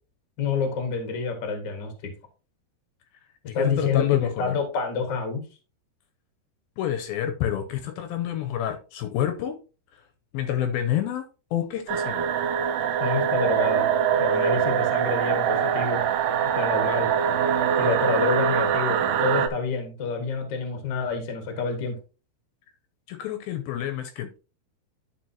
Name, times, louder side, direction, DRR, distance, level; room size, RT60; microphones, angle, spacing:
voice 1, 0.4-1.9 3.5-4.0 4.4-5.4 13.0-13.9 14.2-16.0 16.5-17.1 17.8-22.0, left 5 dB, 55° left, 1.2 m, -28 dB
voice 2, 3.5-4.6 6.8-9.6 10.3-11.2 11.5-12.3 23.1-24.4, left 11 dB, 80° left, 2.3 m, -28 dB
sound 1, 11.9-19.5, right 8 dB, 90° right, 1.9 m, -23 dB
12.0 x 4.5 x 2.8 m
omnidirectional pair, 4.6 m